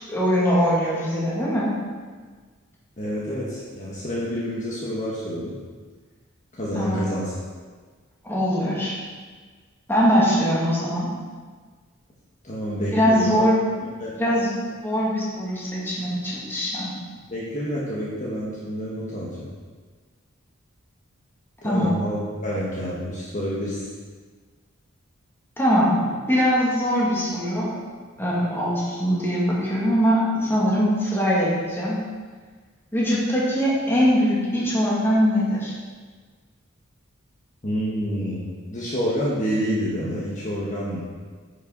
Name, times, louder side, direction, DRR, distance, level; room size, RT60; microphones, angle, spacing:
voice 1, 0.0-1.8 6.7-7.0 8.2-8.9 9.9-11.1 12.9-13.6 14.2-14.5 14.8-16.9 21.6-22.0 25.6-27.7 28.2-32.0 32.9-35.7, equal, 10° left, -7 dB, 2.5 m, -22 dB
voice 2, 3.0-5.6 6.5-7.3 12.4-13.5 13.8-14.2 17.3-19.5 21.6-22.2 22.4-23.9 37.6-41.0, equal, 40° left, -7 dB, 1.6 m, -28 dB
9.7 x 6.7 x 4.1 m, 1.5 s
head